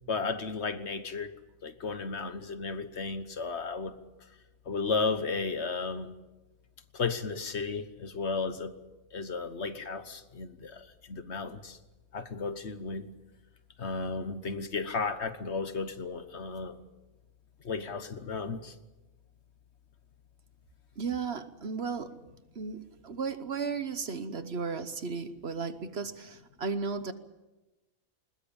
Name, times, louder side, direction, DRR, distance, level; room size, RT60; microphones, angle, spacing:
voice 1, 0.1-1.3 1.6-4.0 4.7-6.1 6.9-8.7 9.1-11.8 12.1-13.1 13.8-16.8 17.6-18.7, left 4 dB, 55° left, 11 dB, 1.4 m, -34 dB
voice 2, 21.0-22.1 22.5-27.1, right 5 dB, 50° right, 11 dB, 1.2 m, -35 dB
21.0 x 20.5 x 8.8 m, 1.1 s
omnidirectional pair, 1.4 m